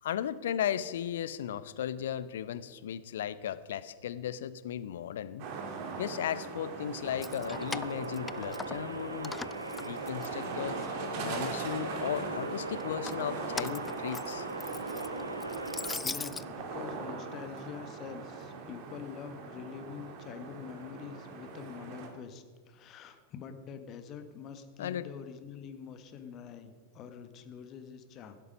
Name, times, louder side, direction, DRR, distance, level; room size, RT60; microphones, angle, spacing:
voice 1, 0.0-5.5 6.0-9.4 9.8-10.8 11.2-14.5 24.8-25.1, left 10 dB, 60° left, 16 dB, 0.7 m, -36 dB
sound 1, 5.4-22.1, right 4 dB, 45° right, 2.6 m, -41 dB
Keys jangling, 7.0-9.0 9.2-10.9 11.3-12.0 12.8-16.5, left 4 dB, 10° left, 0.4 m, -41 dB
sound 2, 7.4-16.0, right 2 dB, 80° right, 1.4 m, -40 dB
voice 2, 16.0-28.4, left 7 dB, 35° left, 9 dB, 1.4 m, -45 dB
16.0 x 12.5 x 5.3 m, 1.5 s
figure-of-eight pair, 90°, 0 cm